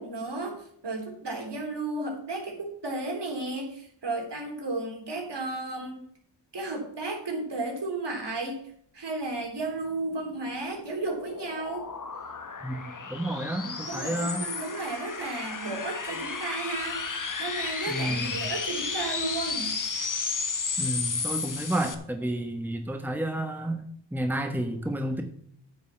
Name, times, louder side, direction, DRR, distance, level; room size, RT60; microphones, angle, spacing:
voice 1, 0.0-6.0 6.5-8.6 8.9-11.8 13.5-19.8, right 2 dB, 60° right, 1 dB, 3.6 m, -33 dB
sound 1, 10.1-21.9, left 5 dB, 45° left, 1.3 m, -33 dB
voice 2, 12.6-14.4 17.9-18.4 20.8-23.8 24.1-25.2, right 1 dB, 5° right, 6 dB, 1.2 m, -31 dB
9.5 x 5.6 x 7.3 m, 0.65 s
cardioid pair, 45°, 46 cm